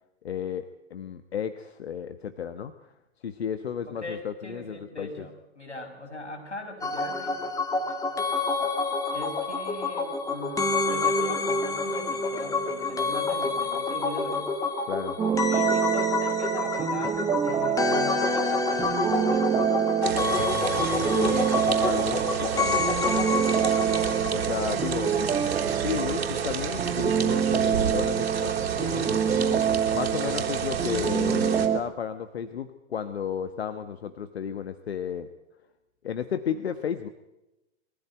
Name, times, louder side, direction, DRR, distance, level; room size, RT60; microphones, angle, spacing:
voice 1, 0.2-0.6 0.9-2.9 3.2-5.2 14.9-15.2 20.9-23.3 24.3-25.1 25.8-28.5 28.8-29.7 29.9-35.3 36.0-37.1, left 8 dB, 65° left, 10 dB, 1.2 m, -33 dB
voice 2, 3.9-7.4 9.1-14.5 15.5-19.5 23.9-24.1, left 1 dB, 90° left, 2 dB, 6.1 m, -40 dB
sound 1, 6.8-24.9 25.1-25.2, left 3 dB, 10° left, 2.1 m, -28 dB
sound 2, 15.2-31.8, right 8 dB, 10° right, 0.7 m, -27 dB
sound 3, 20.0-31.7, right 6 dB, 65° right, 3.8 m, -31 dB
22.5 x 15.0 x 9.3 m, 0.96 s
figure-of-eight pair, 115°, 33 cm